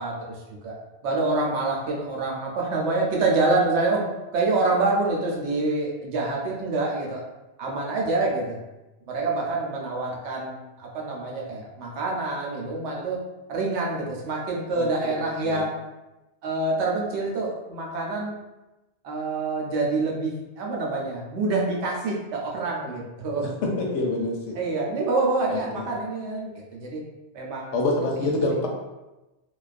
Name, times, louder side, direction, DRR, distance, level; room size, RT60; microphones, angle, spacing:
voice 1, 0.0-7.2 7.6-8.6 9.0-13.2 13.5-15.7 16.4-18.4 19.0-23.5 24.5-27.0 27.3-27.8, right 3 dB, 80° right, -2 dB, 0.9 m, -26 dB
voice 2, 14.7-15.2 15.4-15.6 23.8-24.6 25.5-25.8 27.7-28.7, left 2 dB, 80° left, -1 dB, 0.9 m, -26 dB
2.3 x 2.2 x 2.4 m, 1.0 s
omnidirectional pair, 1.2 m